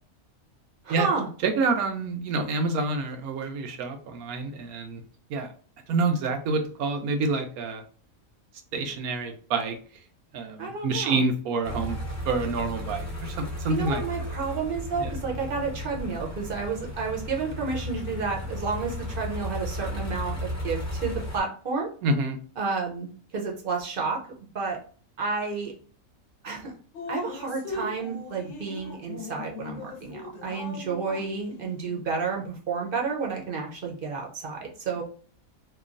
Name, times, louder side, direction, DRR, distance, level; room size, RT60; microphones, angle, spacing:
voice 1, 0.8-1.3 10.6-11.2 13.7-21.9 22.6-24.2 24.5-24.8 25.2-25.7 26.4-26.7 27.1-35.0, right 4 dB, 50° right, 0 dB, 0.7 m, -31 dB
voice 2, 1.4-5.0 5.3-5.5 5.9-7.8 8.7-9.8 10.3-12.0 12.3-14.0 14.9-15.1 22.0-22.4, right 3 dB, 85° right, 6 dB, 1.1 m, -27 dB
sound 1, 11.6-21.4, left 1 dB, 15° left, 0.6 m, -34 dB
Drip, 26.9-32.2, left 3 dB, 65° left, 0.8 m, -39 dB
3.0 x 2.3 x 2.4 m, 0.42 s
omnidirectional pair, 1.5 m